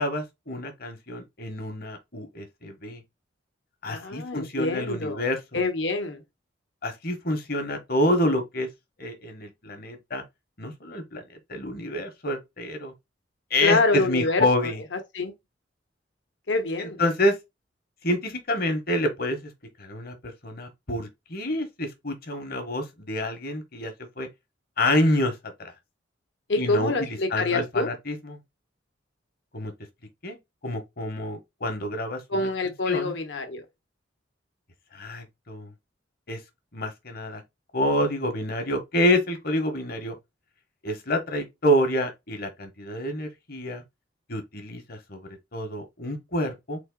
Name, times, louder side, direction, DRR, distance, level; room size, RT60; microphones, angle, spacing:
voice 1, 0.0-3.0 3.8-5.6 6.8-8.7 9.0-10.2 10.6-11.2 11.5-12.9 13.5-14.8 16.8-17.3 18.0-19.5 19.8-20.1 20.4-24.3 24.8-25.7 26.6-28.4 29.5-29.7 30.2-30.4 30.6-32.5 32.9-33.1 34.9-35.7 36.3-36.4 36.7-37.4 37.7-40.1 40.8-43.8 44.3-46.8, left 1 dB, 55° left, 1.3 m, -28 dB
voice 2, 3.9-5.2 5.5-6.2 13.6-15.3 16.5-17.0 26.5-27.9 32.3-33.6, left 3 dB, 70° left, 1.1 m, -26 dB
3.9 x 2.9 x 3.8 m
head